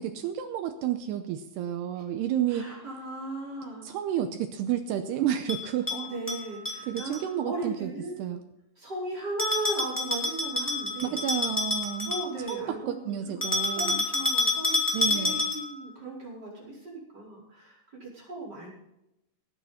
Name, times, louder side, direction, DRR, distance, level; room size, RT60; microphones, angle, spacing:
voice 1, 0.0-2.7 3.8-5.9 6.9-7.9 8.2-8.4 11.0-12.1 12.5-14.0 14.9-15.5, right 10 dB, 85° right, 7 dB, 2.4 m, -31 dB
voice 2, 2.5-3.9 5.9-7.1 7.4-8.2 8.8-11.2 12.0-18.7, right 2 dB, 20° right, -5 dB, 5.0 m, -37 dB
Bell, 5.5-7.2 9.4-12.6 13.4-15.8, left 2 dB, 10° left, 0.8 m, -29 dB
19.0 x 9.5 x 4.2 m, 0.87 s
omnidirectional pair, 5.5 m